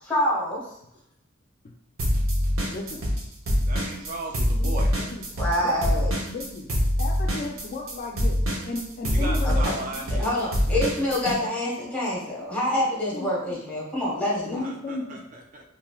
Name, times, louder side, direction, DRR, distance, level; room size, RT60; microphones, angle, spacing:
voice 1, 0.0-0.6 5.4-6.1 9.4-9.8 10.1-14.6, left 1 dB, 5° left, -5 dB, 0.9 m, -26 dB
sound 1, 2.0-3.2 3.5-11.4, equal, 85° right, 0.7 m, -24 dB
voice 2, 2.7-3.1 4.6-4.7 5.1-5.2 5.6-6.0 6.3-6.7 7.0-8.4 8.6-10.1 13.1-13.6 14.5-15.3, left 3 dB, 40° left, 1 dB, 0.3 m, -35 dB
voice 3, 3.7-4.9 9.1-10.9 14.6-15.6, right 2 dB, 40° right, 1 dB, 0.3 m, -37 dB
3.0 x 2.6 x 2.3 m, 0.79 s
head